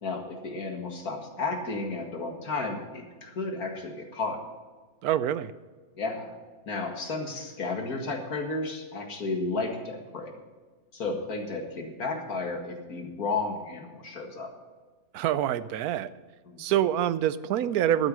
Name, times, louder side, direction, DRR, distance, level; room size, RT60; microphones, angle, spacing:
voice 1, 0.0-4.4 5.9-6.3 6.7-10.3 10.9-14.5 16.5-16.6, left 3 dB, 85° left, 3 dB, 2.3 m, -33 dB
voice 2, 5.0-5.5 15.1-16.1 16.6-18.1, right 11 dB, 85° right, 15 dB, 1.1 m, -26 dB
12.0 x 9.4 x 6.3 m, 1.4 s
omnidirectional pair, 1.5 m